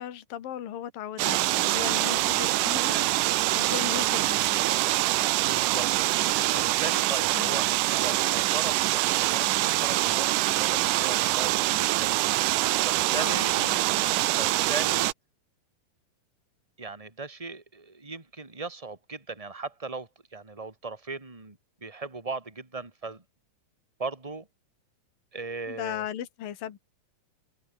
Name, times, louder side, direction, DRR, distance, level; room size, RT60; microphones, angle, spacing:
voice 1, 0.0-4.7 7.3-7.6 13.1-13.8 25.7-26.8, left 10 dB, 75° left, 3.7 m, -37 dB
sound 1, 1.2-15.1, right 17 dB, 75° right, 2.1 m, -25 dB
voice 2, 5.4-6.2 6.5-12.2 12.8-13.6 14.4-15.1 16.8-23.2 24.0-24.5 25.3-26.0, right 4 dB, 10° right, 2.8 m, -38 dB
open air
omnidirectional pair, 4.1 m